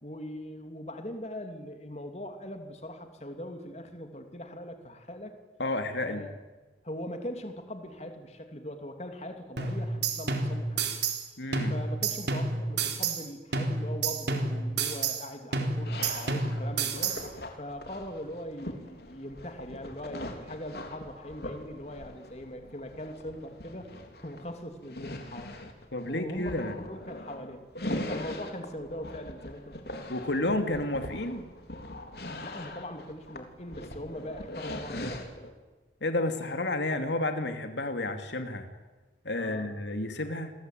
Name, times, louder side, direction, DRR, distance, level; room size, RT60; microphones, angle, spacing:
voice 1, 0.0-5.3 6.0-6.4 6.8-10.8 11.7-17.2 17.6-23.9 24.2-25.5 26.0-27.6 28.1-30.0 32.4-35.3 39.4-39.7, left 1 dB, 35° left, 6 dB, 3.0 m, -41 dB
voice 2, 5.6-6.3 11.4-11.8 25.9-26.7 30.1-31.5 36.0-38.7 39.2-40.5, left 2 dB, 80° left, 7 dB, 2.7 m, -31 dB
sound 1, 9.6-11.2 11.5-13.2 13.5-15.2 15.5-17.2, right 4 dB, 70° right, 3.9 m, -30 dB
sound 2, 15.8-35.5, left 1 dB, 60° left, 3.6 m, -41 dB
29.0 x 22.0 x 9.3 m, 1.2 s
head